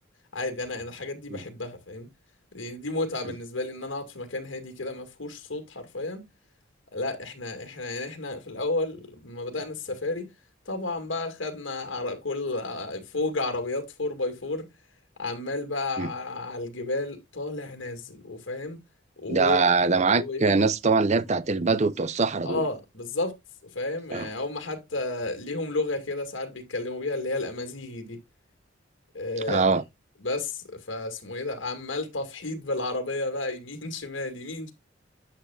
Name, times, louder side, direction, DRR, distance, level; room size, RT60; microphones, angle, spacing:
voice 1, 0.3-2.1 2.5-6.3 6.9-10.3 10.7-14.7 15.2-18.8 19.2-19.7 20.1-20.4 22.4-23.4 23.7-28.2 29.1-29.6 30.2-34.7, left 2 dB, 70° left, 2.2 m, -32 dB
voice 2, 19.3-22.6 24.1-24.3 29.5-29.8, right 4 dB, 35° right, 0.6 m, -23 dB
10.0 x 6.8 x 2.3 m
head